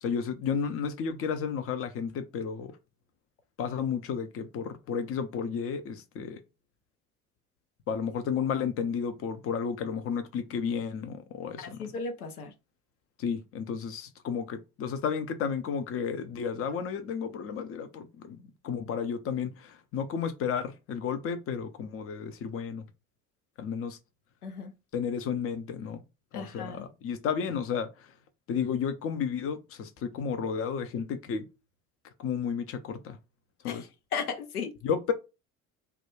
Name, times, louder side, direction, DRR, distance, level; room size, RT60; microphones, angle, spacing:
voice 1, 0.0-2.8 3.6-6.4 7.9-11.8 13.2-22.8 23.6-24.0 24.9-26.0 26.3-27.9 28.5-31.4 32.2-33.2 33.6-33.8 34.8-35.1, left 6 dB, 30° left, 0.5 m, -32 dB
voice 2, 11.6-12.5 24.4-24.7 26.3-26.8 33.6-34.7, left 5 dB, 80° left, 0.6 m, -36 dB
2.4 x 2.2 x 3.3 m
figure-of-eight pair, 60°, 44 cm